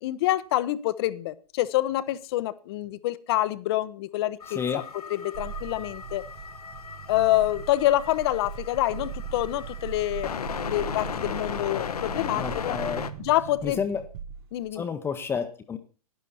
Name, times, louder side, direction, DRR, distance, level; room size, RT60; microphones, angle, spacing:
voice 1, 0.0-4.8 5.2-6.2 7.1-12.8 13.2-13.8 14.5-14.8, left 15 dB, 40° left, 0.8 m, -27 dB
sound 1, 4.4-13.1, left 7 dB, 75° left, 1.1 m, -36 dB
voice 2, 4.5-4.8 12.4-13.1 13.6-14.1 14.7-15.8, left 6 dB, 10° left, 0.8 m, -30 dB
sound 2, 5.3-14.7, right 8 dB, 40° right, 0.8 m, -40 dB
12.0 x 10.5 x 4.2 m
hypercardioid pair, 125°, 20 cm